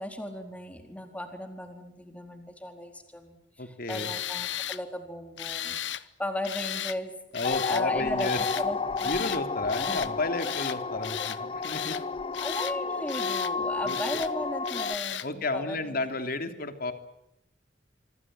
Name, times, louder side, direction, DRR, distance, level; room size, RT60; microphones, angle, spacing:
voice 1, 0.0-7.1 7.7-8.3 8.6-9.1 9.8-10.1 12.4-16.1, left 1 dB, 10° left, 5 dB, 4.2 m, -36 dB
voice 2, 3.6-4.1 7.3-8.4 9.0-12.0 13.8-14.0 15.2-16.9, left 2 dB, 55° left, 8 dB, 3.1 m, -32 dB
Tools, 3.9-4.8 5.4-6.0 6.4-7.0 7.3-7.8 8.2-8.7 9.0-9.4 9.7-10.1 10.4-10.8 11.0-12.0 12.3-12.8 13.1-13.5 13.9-14.3 14.7-15.3, left 11 dB, 75° left, 1.1 m, -35 dB
sound 1, 7.4-14.9, left 4 dB, 30° left, 1.0 m, -31 dB
25.5 x 25.0 x 7.8 m, 0.83 s
head